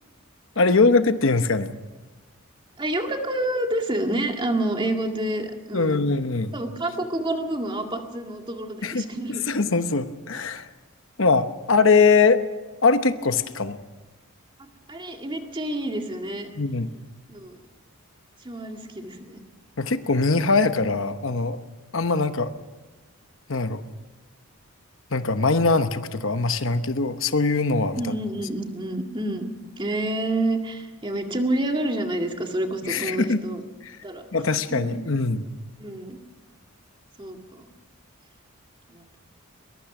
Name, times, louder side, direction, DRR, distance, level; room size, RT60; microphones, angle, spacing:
voice 1, 0.6-1.7 5.7-6.5 8.8-9.1 9.5-10.7 11.2-12.4 12.8-13.8 16.6-16.9 19.8-21.6 21.9-22.5 23.5-23.8 25.1-28.0 32.8-33.4 33.8-34.0 34.3-35.4, left 4 dB, 60° left, 10 dB, 1.0 m, -22 dB
voice 2, 2.8-6.0 6.5-9.6 14.9-16.5 17.3-17.6 18.4-19.4 28.0-29.5 29.8-33.6 34.0-34.3 34.7-35.0 35.8-36.2 37.2-37.7 38.9-39.0, right 1 dB, 20° right, 3 dB, 2.0 m, -28 dB
22.0 x 21.5 x 6.1 m, 1.2 s
head